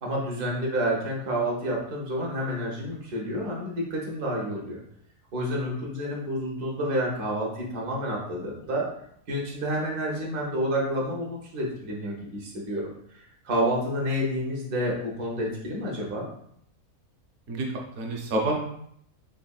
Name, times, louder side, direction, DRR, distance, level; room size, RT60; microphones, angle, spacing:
voice 1, 0.0-4.8 5.3-8.9 9.3-12.9 13.4-16.3, equal, 85° right, -2 dB, 1.5 m, -29 dB
voice 2, 17.5-18.5, right 2 dB, 60° right, 0 dB, 0.9 m, -28 dB
4.1 x 3.5 x 2.3 m, 0.70 s
omnidirectional pair, 1.6 m